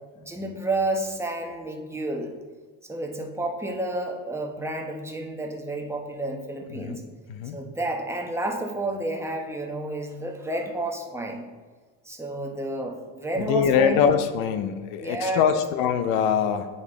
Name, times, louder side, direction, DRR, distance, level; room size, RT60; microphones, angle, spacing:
voice 1, 0.2-2.3 2.8-7.0 7.5-11.4 12.0-14.1 15.0-15.4, right 1 dB, 10° right, 2 dB, 0.9 m, -30 dB
voice 2, 7.3-7.6 13.4-16.7, left 7 dB, 85° left, 10 dB, 0.7 m, -23 dB
8.7 x 5.3 x 4.0 m, 1.5 s
cardioid pair, 120°, 34 cm